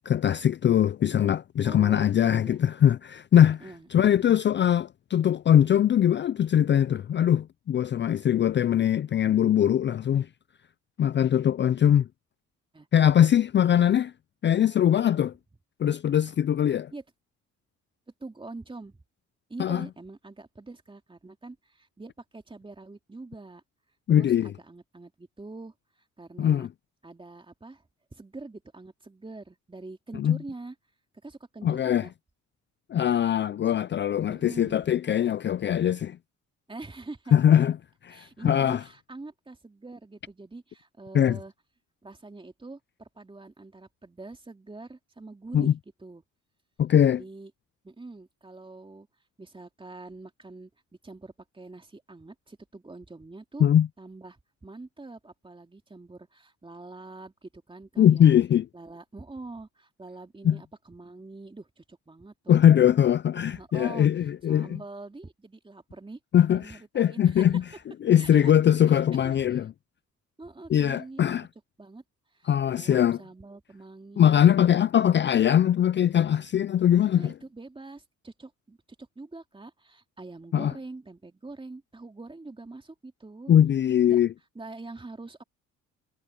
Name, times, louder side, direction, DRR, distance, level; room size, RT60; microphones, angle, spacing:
voice 1, 0.1-3.6 3.9-10.3 11.0-12.1 12.9-14.1 14.4-15.3 15.8-16.9 19.6-19.9 24.1-24.5 26.4-26.7 30.2-30.4 31.6-32.1 32.9-36.2 37.3-37.8 38.0-38.8 41.1-41.4 45.5-45.7 46.8-47.2 53.6-53.9 58.0-58.7 60.4-60.6 62.5-64.7 66.3-66.6 67.0-67.6 68.0-69.7 70.7-71.5 72.5-73.2 74.2-77.3 80.5-80.7 83.5-84.3, left 10 dB, 40° left, 0.4 m, -21 dB
voice 2, 1.6-2.6 3.6-4.1 12.7-12.9 16.9-17.0 18.2-19.0 19.5-23.6 24.1-25.7 26.2-26.7 27.0-27.8 28.1-30.7 31.2-32.1 34.3-34.9 36.7-37.3 38.1-41.5 42.0-46.2 47.0-47.5 47.8-49.1 49.4-50.7 51.0-53.7 54.0-58.3 58.7-62.6 63.5-64.1 64.5-67.6 68.1-68.5 68.9-69.6 70.4-71.2 71.8-72.0 72.3-74.4 77.1-83.5 84.1-84.2 84.5-85.4, right 3 dB, 15° right, 2.8 m, -44 dB
cardioid pair, 90°, 30 cm